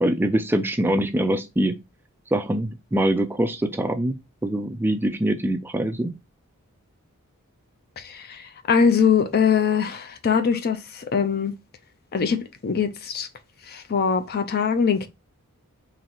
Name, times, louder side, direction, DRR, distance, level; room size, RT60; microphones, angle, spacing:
voice 1, 0.0-1.8 2.3-4.2 4.4-6.1, right 1 dB, 10° right, 0.3 m, -23 dB
voice 2, 8.0-11.5 12.1-13.3 13.7-15.1, left 6 dB, 45° left, 0.5 m, -22 dB
3.8 x 3.1 x 2.9 m
head